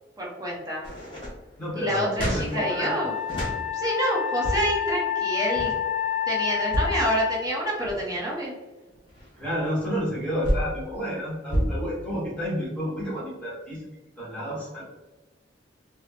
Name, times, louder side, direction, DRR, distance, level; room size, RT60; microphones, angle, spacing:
voice 1, 0.2-0.8 1.8-3.1 3.7-5.7 6.3-8.5 11.7-11.8, right 1 dB, 20° right, -4 dB, 0.8 m, -27 dB
sound 1, 0.8-3.6 4.2-4.9 5.4-5.8 6.5-7.0 7.6-8.2 8.8-10.7 11.5-11.7, equal, 30° left, 1.2 m, -30 dB
voice 2, 1.6-3.1 9.4-13.9 14.2-14.8, equal, 5° left, -6 dB, 1.2 m, -30 dB
Wind instrument woodwind instrument, 2.5-7.4, left 9 dB, 80° right, 1.0 m, -28 dB
2.9 x 2.0 x 2.8 m, 1.1 s
head